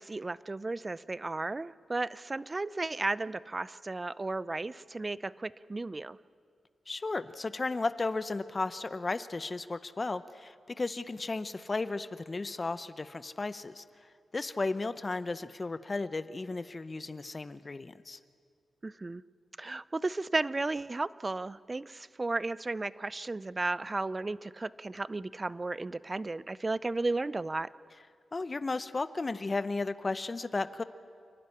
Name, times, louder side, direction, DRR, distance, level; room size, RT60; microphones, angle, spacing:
voice 1, 0.0-6.2 18.8-19.2 19.6-27.7, right 2 dB, 30° right, 18 dB, 0.5 m, -34 dB
voice 2, 6.9-13.8 14.3-18.2 28.3-30.8, left 3 dB, 35° left, 13 dB, 0.8 m, -34 dB
29.0 x 12.0 x 9.9 m, 2.2 s
cardioid pair, 65°, 0 cm